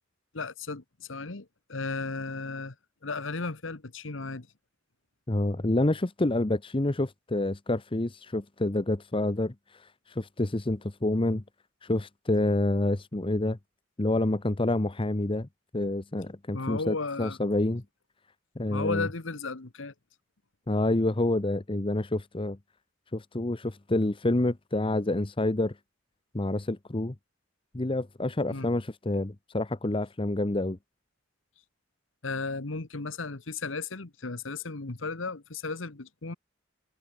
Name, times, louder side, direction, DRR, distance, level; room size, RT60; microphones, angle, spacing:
voice 1, 0.3-2.7 3.0-4.5 16.5-17.4 18.7-19.9 28.5-28.7 32.2-36.3, left 3 dB, 80° left, 1.4 m, -35 dB
voice 2, 5.3-11.4 11.8-13.6 14.0-15.5 15.7-17.8 18.6-19.1 20.7-22.6 23.1-25.8 26.3-27.1 27.7-30.8, left 2 dB, 25° left, 0.9 m, -28 dB
head